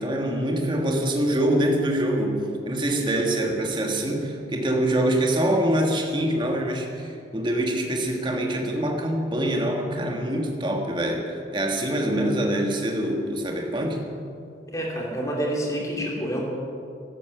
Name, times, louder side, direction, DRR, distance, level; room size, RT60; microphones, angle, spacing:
voice 1, 0.0-14.1, right 1 dB, 25° right, 1 dB, 1.6 m, -25 dB
voice 2, 14.7-16.4, equal, 20° left, -1 dB, 3.0 m, -28 dB
13.5 x 12.0 x 7.9 m, 2.5 s
head